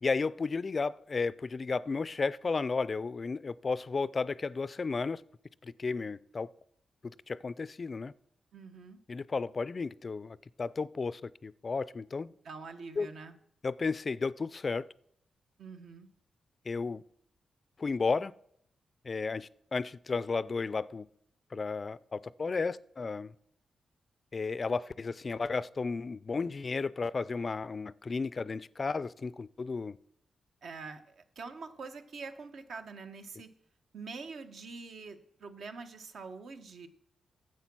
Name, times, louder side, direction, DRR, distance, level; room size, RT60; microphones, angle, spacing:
voice 1, 0.0-5.2 5.6-6.5 7.0-8.1 9.1-12.3 13.0-13.1 13.6-14.9 16.7-17.0 17.8-18.3 19.0-21.1 21.5-23.3 24.3-29.9, left 4 dB, 40° left, 0.3 m, -33 dB
voice 2, 8.5-9.0 12.4-13.4 15.6-16.1 30.6-33.5 33.9-36.9, right 4 dB, 70° right, 1.0 m, -45 dB
9.9 x 7.6 x 6.1 m
cardioid pair, 100°, 0 cm